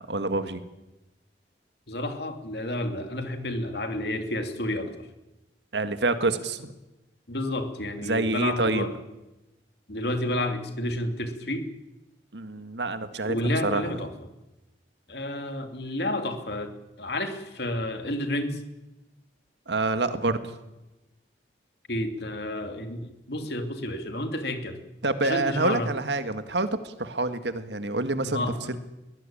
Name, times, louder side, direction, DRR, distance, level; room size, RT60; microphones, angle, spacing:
voice 1, 0.1-0.6 5.7-6.7 8.0-8.9 12.3-14.0 19.7-20.5 25.0-28.8, right 2 dB, 75° right, 10 dB, 1.7 m, -27 dB
voice 2, 1.9-5.1 7.3-8.9 9.9-11.7 13.2-14.1 15.1-18.6 21.9-24.8 25.2-25.9 28.2-28.7, left 1 dB, 65° left, 7 dB, 2.7 m, -30 dB
22.5 x 18.0 x 8.8 m, 1.0 s
head